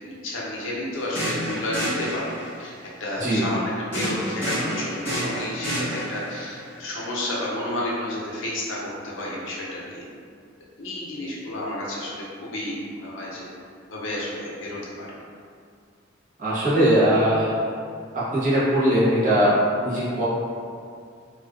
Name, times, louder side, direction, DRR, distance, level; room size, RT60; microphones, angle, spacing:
voice 1, 0.0-2.3 2.6-2.7 3.0-8.8 9.0-10.0 10.8-13.4 13.9-15.1, left 1 dB, 85° left, -5 dB, 0.6 m, -31 dB
sound 1, 0.9-2.7 3.9-6.4, equal, 10° left, 0.9 m, -29 dB
voice 2, 16.4-17.6 18.1-20.2, right 1 dB, 40° right, -9 dB, 0.7 m, -20 dB
2.4 x 2.3 x 2.3 m, 2.2 s
head